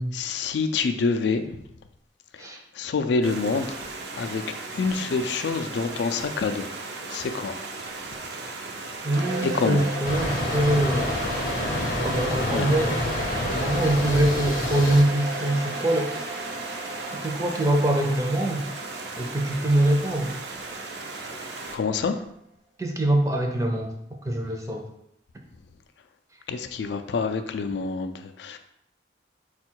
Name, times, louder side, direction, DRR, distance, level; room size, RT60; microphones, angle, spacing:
voice 1, 0.1-1.4 2.3-3.8 4.1-4.4 4.7-6.7 7.1-7.6 9.4-9.8 12.5-12.7 21.7-22.2 26.5-28.6, left 4 dB, 75° left, 8 dB, 0.4 m, -27 dB
Stream, 3.2-21.8, right 3 dB, 65° right, 0.5 m, -37 dB
voice 2, 9.0-11.2 12.0-12.9 13.4-16.3 17.2-18.7 19.2-20.3 22.8-23.9 24.2-24.9, right 1 dB, 15° right, 2 dB, 0.5 m, -24 dB
sound 1, 9.1-22.0, right 2 dB, 90° right, 1.1 m, -36 dB
sound 2, 10.0-15.0, left 1 dB, 50° left, 0.7 m, -28 dB
4.4 x 2.3 x 4.4 m, 0.76 s
head